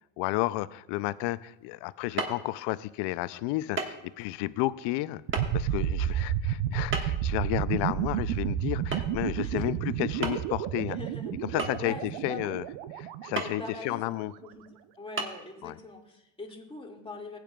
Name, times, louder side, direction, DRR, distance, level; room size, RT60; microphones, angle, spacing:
voice 1, 0.2-5.2 5.5-11.0 11.5-12.7 12.9-14.3 15.6-15.8, left 17 dB, 75° left, 17 dB, 0.5 m, -32 dB
sound 1, 2.2-2.4 3.8-4.0 4.3-4.4 5.3-5.4 6.9-7.3 8.9-9.2 9.5-9.6 10.2-10.6 11.6-12.1 13.4-13.6 14.2-14.3 15.2-15.3, right 3 dB, 30° right, 1.5 m, -32 dB
sound 2, 5.3-14.2, right 10 dB, 75° right, 0.6 m, -31 dB
voice 2, 9.4-9.8 10.8-11.3 11.8-12.4 13.4-14.1 14.4-14.7 15.0-17.4, left 3 dB, 15° left, 0 dB, 2.0 m, -42 dB
15.5 x 9.2 x 2.3 m, 0.92 s
supercardioid pair, 85°, 42 cm